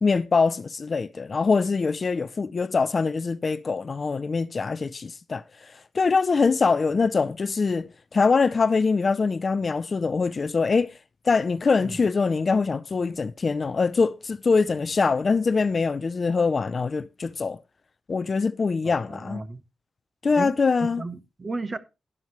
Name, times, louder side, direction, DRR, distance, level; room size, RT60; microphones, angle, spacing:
voice 1, 0.0-10.9 11.2-17.6 18.1-19.4 20.2-21.0, left 4 dB, 35° left, 0.5 m, -23 dB
voice 2, 18.8-19.6 20.4-20.5 21.0-21.8, right 3 dB, 25° right, 1.1 m, -34 dB
12.0 x 11.0 x 3.1 m
wide cardioid pair, 155°, 0 cm